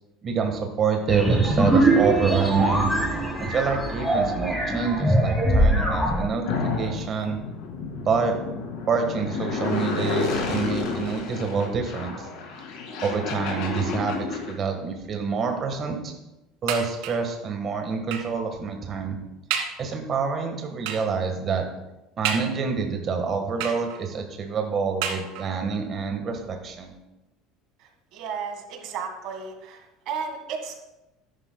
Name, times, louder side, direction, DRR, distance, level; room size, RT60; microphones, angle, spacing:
voice 1, 0.2-2.9 3.4-7.4 8.0-12.3 13.0-16.1 16.6-19.2 19.8-21.6 22.2-26.9, right 5 dB, 30° right, 4 dB, 1.5 m, -27 dB
sound 1, 1.1-6.2, right 1 dB, ahead, 1.9 m, -22 dB
sound 2, 6.5-14.5, left 4 dB, 70° left, 2.4 m, -30 dB
sound 3, 16.7-17.3 18.1-18.4 19.0-19.1 19.5-19.9 20.9-21.2 22.2-22.9 23.6-24.2 25.0-25.7 26.5-26.6 26.9-27.0, right 7 dB, 85° right, 1.6 m, -31 dB
voice 2, 28.1-29.8 30.1-30.8, right 6 dB, 55° right, 4 dB, 1.7 m, -33 dB
13.5 x 11.0 x 2.3 m, 0.96 s
cardioid pair, 160°, 0 cm